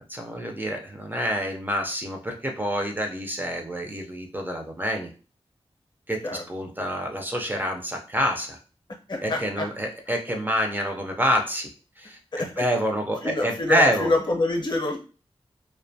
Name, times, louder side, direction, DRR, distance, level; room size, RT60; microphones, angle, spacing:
voice 1, 0.1-5.1 6.1-8.6 9.2-11.7 12.0-14.1, equal, 20° right, 2 dB, 0.4 m, -27 dB
voice 2, 9.1-9.7 12.3-12.6 13.2-15.0, left 2 dB, 45° left, 1 dB, 0.6 m, -26 dB
2.5 x 2.1 x 2.6 m, 0.36 s
wide cardioid pair, 110°, 10 cm